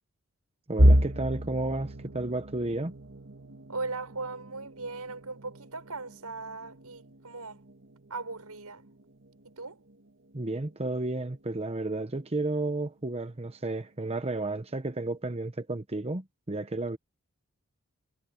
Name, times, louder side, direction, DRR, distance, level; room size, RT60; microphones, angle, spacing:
voice 1, 0.7-2.9 10.3-17.0, right 2 dB, 25° right, 1.0 m, -32 dB
sound 1, 0.8-12.6 13.0-13.3 13.7-13.9 14.7-15.2, equal, 60° right, 2.2 m, -31 dB
voice 2, 3.7-7.6 8.1-8.9 9.4-9.8, right 3 dB, 90° right, 6.4 m, -38 dB
head